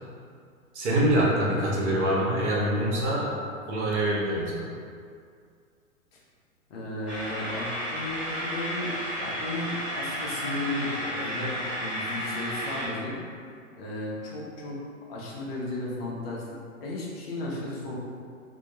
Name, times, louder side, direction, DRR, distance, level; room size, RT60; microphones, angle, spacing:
voice 1, 0.7-3.4 3.7-4.7, right 1 dB, 55° right, -5 dB, 0.8 m, -25 dB
voice 2, 6.7-8.9 9.2-11.5 11.8-13.2 13.8-14.8 15.1-17.9, left 2 dB, 45° left, -5 dB, 0.6 m, -34 dB
sound 1, 7.1-12.9, equal, 5° right, 0.4 m, -33 dB
2.2 x 2.2 x 2.8 m, 2.2 s
figure-of-eight pair, 105°, 41 cm